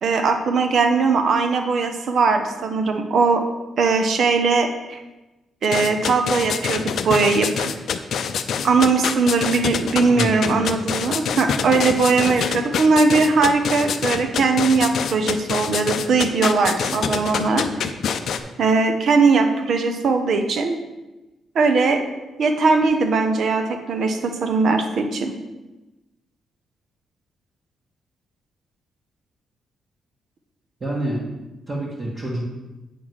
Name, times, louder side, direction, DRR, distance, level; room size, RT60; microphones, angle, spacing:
voice 1, 0.0-3.4 3.8-5.0 5.6-7.7 8.6-17.7 18.6-20.8 21.5-22.0 22.4-25.3, right 4 dB, 55° right, 6 dB, 0.9 m, -19 dB
sound 1, 5.6-18.4, left 7 dB, 65° left, 0.5 m, -25 dB
voice 2, 10.1-10.8 30.8-31.2 31.7-32.4, right 1 dB, 30° right, -7 dB, 1.6 m, -27 dB
8.2 x 3.9 x 6.3 m, 1.1 s
cardioid pair, 130°, 0 cm